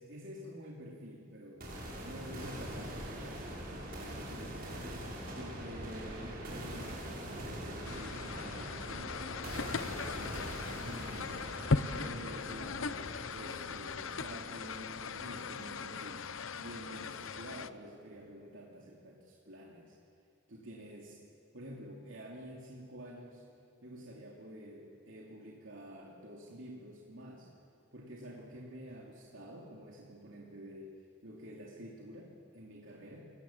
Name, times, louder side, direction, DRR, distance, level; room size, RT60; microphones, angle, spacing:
voice 1, 0.0-1.7 2.0-4.9 5.3-9.2 9.5-11.4 11.9-16.3 16.6-19.9 20.5-21.2 21.5-23.4 23.8-27.5 27.9-30.9 31.2-33.3, right 1 dB, 75° right, -3 dB, 2.9 m, -49 dB
sound 1, 1.6-15.5, equal, 50° right, 6.1 m, -43 dB
sound 2, 7.8-17.7, left 4 dB, 90° left, 0.8 m, -38 dB
30.0 x 18.5 x 7.4 m, 2.4 s
head